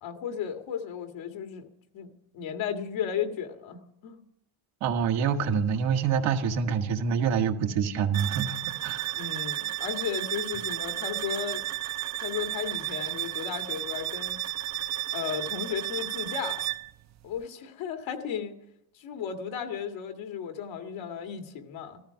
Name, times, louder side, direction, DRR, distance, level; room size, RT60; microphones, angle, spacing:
voice 1, 0.0-1.7 1.9-4.2 9.1-11.6 12.2-14.4 15.1-16.6 17.2-18.6 18.9-22.0, left 8 dB, 85° left, 5 dB, 2.0 m, -35 dB
voice 2, 4.8-9.2, right 7 dB, 85° right, 4 dB, 1.6 m, -26 dB
sound 1, 8.1-16.9, right 15 dB, 40° right, 0.5 m, -33 dB
14.5 x 14.0 x 5.8 m, 0.78 s
cardioid pair, 100°, 46 cm